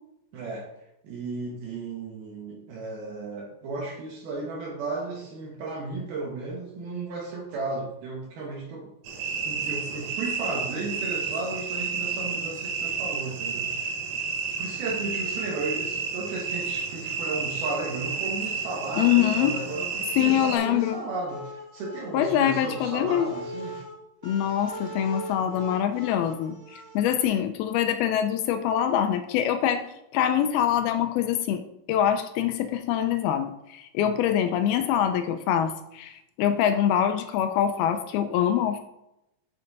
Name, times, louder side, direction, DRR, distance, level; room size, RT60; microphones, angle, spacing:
voice 1, 0.3-0.7 1.0-8.9 9.4-13.9 14.6-23.8 34.0-34.2, right 3 dB, 70° right, -1 dB, 3.1 m, -34 dB
sound 1, 9.0-20.6, right 5 dB, 90° right, 3.7 m, -31 dB
voice 2, 19.0-19.6 20.2-21.0 22.1-23.3 24.2-29.9 30.1-31.6 31.9-38.8, left 10 dB, 80° left, 8 dB, 2.4 m, -24 dB
sound 2, 20.5-27.2, equal, 30° right, 1.3 m, -41 dB
8.5 x 6.7 x 4.0 m, 0.85 s
omnidirectional pair, 4.7 m